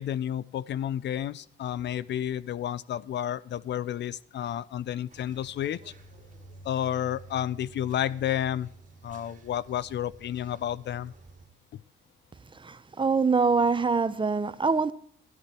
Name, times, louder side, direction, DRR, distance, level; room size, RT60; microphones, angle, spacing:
voice 1, 0.0-5.8 6.6-8.7 9.0-11.1 11.7-11.8, left 10 dB, 65° left, 0.6 m, -31 dB
sound 1, 5.1-11.5, right 3 dB, 40° right, 2.5 m, -50 dB
voice 2, 12.6-14.9, right 4 dB, 25° right, 0.8 m, -24 dB
13.0 x 12.0 x 4.4 m
cardioid pair, 90°, 20 cm